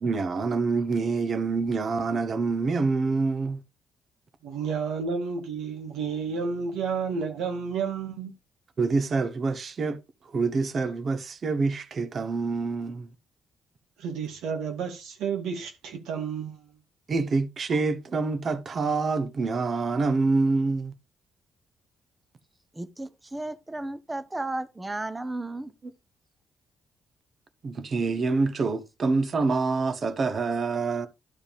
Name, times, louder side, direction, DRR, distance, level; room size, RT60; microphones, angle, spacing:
voice 1, 0.0-3.6 8.8-10.0 10.3-13.1 17.1-20.9 27.6-31.1, right 4 dB, 45° right, 1.0 m, -26 dB
voice 2, 4.4-8.3 14.0-16.7, right 5 dB, 85° right, 1.9 m, -31 dB
voice 3, 22.7-25.7, right 2 dB, 15° right, 0.8 m, -34 dB
12.0 x 5.0 x 3.5 m
cardioid pair, 90°, 0 cm